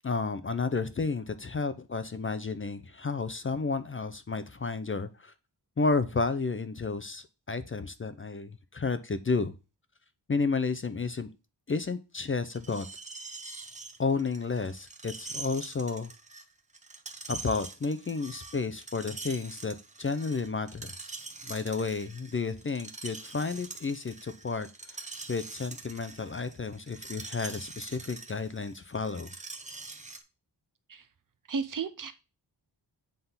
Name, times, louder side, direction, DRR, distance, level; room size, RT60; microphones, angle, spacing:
voice 1, 0.0-5.3 5.8-9.5 10.3-11.3 11.7-12.9 14.0-16.1 17.3-20.9 21.4-29.3, left 4 dB, 30° left, 12 dB, 0.5 m, -32 dB
Screech, 12.5-30.2, right 3 dB, 15° right, 0.8 m, -44 dB
voice 2, 31.5-32.1, right 5 dB, 50° right, 12 dB, 0.8 m, -33 dB
8.0 x 3.6 x 5.6 m, 0.29 s
wide cardioid pair, 150°, 43 cm